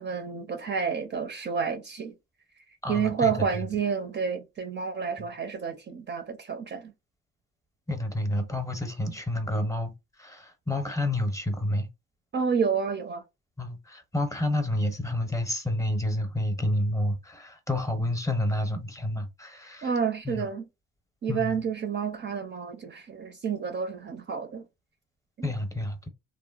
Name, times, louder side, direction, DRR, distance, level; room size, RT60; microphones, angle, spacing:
voice 1, 0.0-2.1 2.9-6.9 12.3-13.2 19.8-20.6 21.2-24.6 25.4-25.5, right 6 dB, 35° right, 0.4 m, -29 dB
voice 2, 2.8-3.3 5.2-5.3 7.9-9.9 10.2-11.9 13.6-19.9 20.2-20.4 21.3-21.6 25.4-26.1, left 1 dB, 10° left, 0.7 m, -29 dB
2.9 x 2.1 x 2.3 m
cardioid pair, 90°, 30 cm